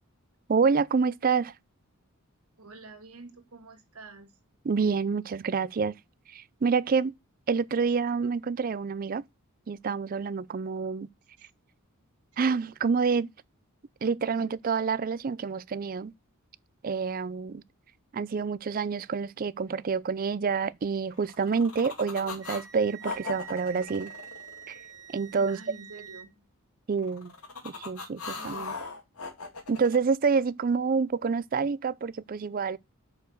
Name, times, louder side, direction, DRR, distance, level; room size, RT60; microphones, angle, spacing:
voice 1, 0.5-1.5 4.7-5.9 6.3-7.1 7.5-9.2 9.7-11.1 12.4-13.3 14.0-16.1 16.8-17.6 18.1-24.1 24.7-24.8 25.1-25.6 26.9-27.3 27.6-28.7 29.7-32.8, right 5 dB, 40° right, 0.4 m, -27 dB
voice 2, 2.6-4.4 11.4-11.5 25.5-26.5, right 3 dB, 85° right, 2.1 m, -48 dB
sound 1, 21.1-22.7 23.0-25.2 27.0-30.0, left 4 dB, 85° left, 2.3 m, -39 dB
Wind instrument woodwind instrument, 22.4-26.3, right 10 dB, 15° right, 0.9 m, -46 dB
6.6 x 5.2 x 6.3 m
head